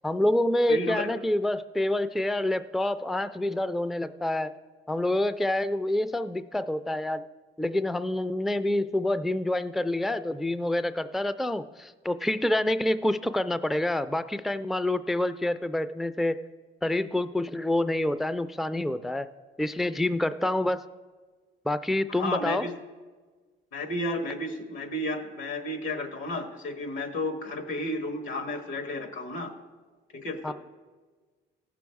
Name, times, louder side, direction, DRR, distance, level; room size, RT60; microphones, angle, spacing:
voice 1, 0.0-4.5 4.9-7.2 7.6-16.4 16.8-19.3 19.6-20.8 21.7-22.6 30.4-30.5, left 1 dB, ahead, 13 dB, 0.3 m, -27 dB
voice 2, 0.7-1.1 22.1-22.7 23.7-29.5 30.1-30.5, left 1 dB, 85° left, 6 dB, 1.5 m, -32 dB
16.0 x 6.2 x 4.7 m, 1.4 s
cardioid pair, 90°, 20 cm